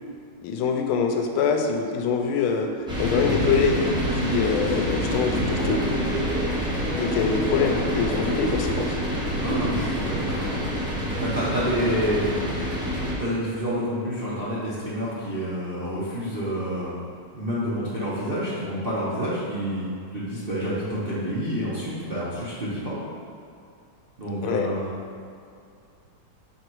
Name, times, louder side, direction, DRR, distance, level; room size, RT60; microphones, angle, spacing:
voice 1, 0.4-3.9 4.2-6.1 6.9-9.0 24.4-24.7, left 5 dB, 85° left, 4 dB, 1.5 m, -24 dB
sound 1, 2.9-13.1, equal, 5° right, 0.7 m, -27 dB
voice 2, 5.2-5.9 9.4-10.5 11.2-12.6 13.2-17.0 17.3-23.0 24.2-24.9, equal, 50° right, -10 dB, 0.6 m, -28 dB
5.2 x 3.9 x 4.6 m, 2.4 s
omnidirectional pair, 2.3 m